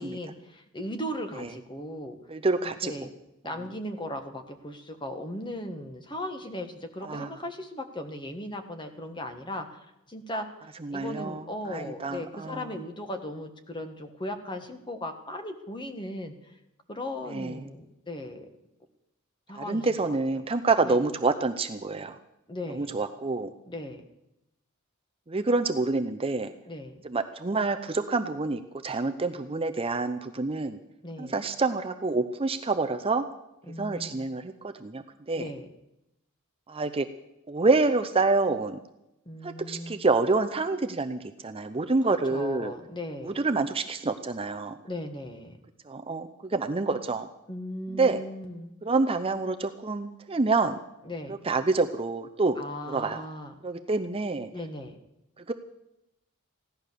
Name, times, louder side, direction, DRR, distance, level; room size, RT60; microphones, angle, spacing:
voice 1, 0.0-2.1 2.6-3.1 3.4-16.3 16.9-18.5 19.5-19.9 20.3-20.5 20.8-21.0 22.5-22.9 23.6-24.0 26.6-27.0 31.0-31.3 33.7-34.3 35.3-35.7 39.2-40.0 42.0-43.4 44.8-45.6 47.5-48.7 51.0-51.4 52.6-53.5 54.5-55.0, left 1 dB, 20° left, 6 dB, 1.4 m, -37 dB
voice 2, 2.3-2.9 7.0-7.3 10.8-11.4 11.7-12.7 17.3-17.6 19.5-22.2 22.7-23.5 25.3-26.5 27.1-30.8 31.2-33.2 33.8-34.5 34.8-35.0 35.3-35.5 36.7-37.1 37.5-38.8 39.4-42.7 43.2-44.7 45.9-47.3 47.9-48.2 48.8-50.8 51.3-52.6 52.9-53.2 53.6-54.5 55.5-55.6, right 3 dB, 25° right, 7 dB, 0.6 m, -27 dB
16.0 x 11.5 x 6.8 m, 0.88 s
head